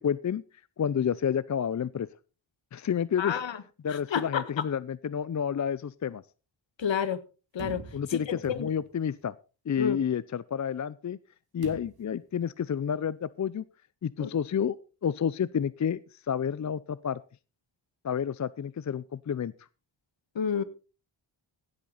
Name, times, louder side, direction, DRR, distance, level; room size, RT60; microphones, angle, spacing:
voice 1, 0.0-0.4 0.8-2.1 2.7-3.4 3.8-6.2 7.9-9.3 9.7-11.2 11.5-13.6 14.0-17.2 18.0-19.5, left 8 dB, 35° left, 0.5 m, -30 dB
voice 2, 3.2-3.6 3.9-4.4 6.8-7.2 7.5-8.7 9.8-10.0 14.2-14.3 20.3-20.6, left 7 dB, 60° left, 1.5 m, -30 dB
sound 1, 7.6-9.1 11.6-12.2, right 5 dB, 45° right, 2.6 m, -45 dB
16.5 x 8.6 x 4.1 m
cardioid pair, 70°, 50 cm